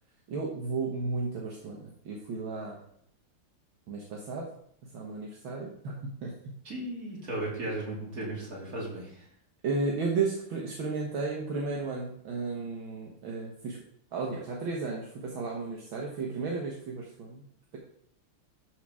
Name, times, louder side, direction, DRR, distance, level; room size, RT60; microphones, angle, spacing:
voice 1, 0.3-2.8 3.9-4.5 4.9-5.9 6.2-6.3 9.6-13.8 14.1-17.4, right 4 dB, 65° right, -2 dB, 2.0 m, -33 dB
voice 2, 6.6-9.3, right 1 dB, 40° right, -4 dB, 3.2 m, -36 dB
12.5 x 4.4 x 4.9 m, 0.68 s
omnidirectional pair, 2.4 m